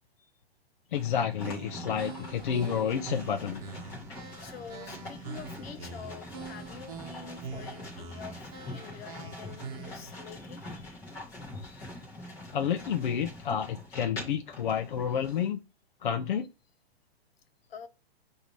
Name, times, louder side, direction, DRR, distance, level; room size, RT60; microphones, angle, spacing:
voice 1, 0.9-3.6 12.5-15.6 16.0-16.5, left 8 dB, 55° left, 0.5 m, -30 dB
sound 1, 0.9-15.5, left 1 dB, 10° left, 0.9 m, -44 dB
sound 2, 1.4-10.1, right 5 dB, 35° right, 1.0 m, -44 dB
voice 2, 4.4-11.0 11.5-12.0 17.7-17.9, left 7 dB, 70° left, 1.0 m, -47 dB
5.7 x 2.7 x 3.1 m
hypercardioid pair, 175°, 31 cm